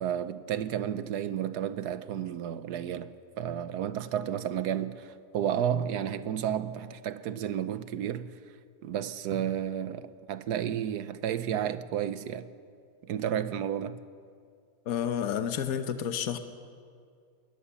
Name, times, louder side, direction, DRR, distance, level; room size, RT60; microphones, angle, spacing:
voice 1, 0.0-8.3 8.8-12.5 13.0-14.0, right 9 dB, 80° right, 1.3 m, -32 dB
voice 2, 14.9-16.4, left 9 dB, 65° left, 1.4 m, -30 dB
21.0 x 19.5 x 7.1 m
omnidirectional pair, 1.7 m